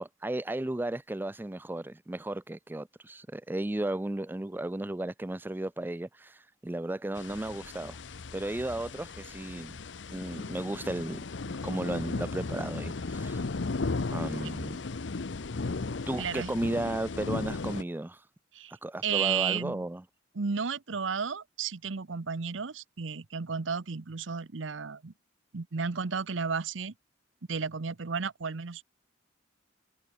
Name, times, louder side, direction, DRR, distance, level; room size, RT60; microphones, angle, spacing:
voice 1, 0.0-8.0 8.3-9.8 10.1-11.2 11.6-13.4 14.1-14.8 16.1-18.2 18.8-20.0, right 1 dB, 10° right, 0.4 m, -34 dB
sound 1, 7.2-17.8, left 3 dB, 70° left, 0.8 m, -36 dB
voice 2, 16.2-16.5 18.5-18.7 19.0-19.9 20.3-25.1 25.5-26.9 27.5-28.8, right 6 dB, 90° right, 0.8 m, -33 dB
head